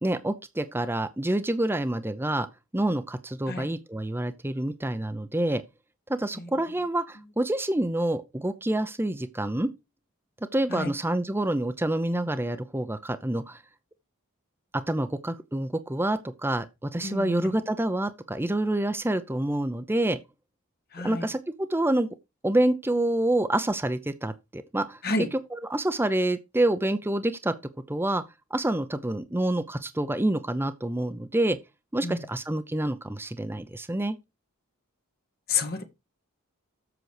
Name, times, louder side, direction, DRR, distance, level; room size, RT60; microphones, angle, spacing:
voice 1, 0.0-2.5 2.7-5.6 6.1-9.7 10.5-13.6 14.7-20.2 21.0-22.1 22.4-25.0 25.3-27.5 27.9-28.2 28.5-31.6 31.9-34.2, right 1 dB, 10° right, 0.6 m, -27 dB
voice 2, 17.0-17.5 20.9-21.3 25.0-25.3 32.0-32.2 35.5-35.8, left 3 dB, 45° left, 1.8 m, -29 dB
7.9 x 6.2 x 4.9 m
head